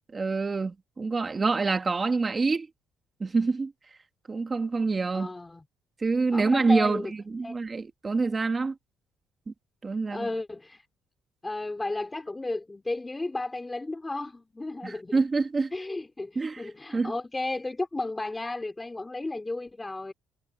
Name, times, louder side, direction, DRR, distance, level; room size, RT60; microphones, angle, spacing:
voice 1, 0.1-2.7 3.2-3.7 4.3-5.3 6.0-7.0 7.3-8.8 9.5-9.6 9.8-10.3 14.8-15.7 16.4-16.6 16.9-17.1, right 4 dB, 25° right, 1.7 m, -26 dB
voice 2, 5.1-5.6 6.3-7.1 7.4-7.6 10.1-10.9 11.4-15.2 15.7-20.1, left 2 dB, 15° left, 3.5 m, -33 dB
cardioid pair, 120°, 0 cm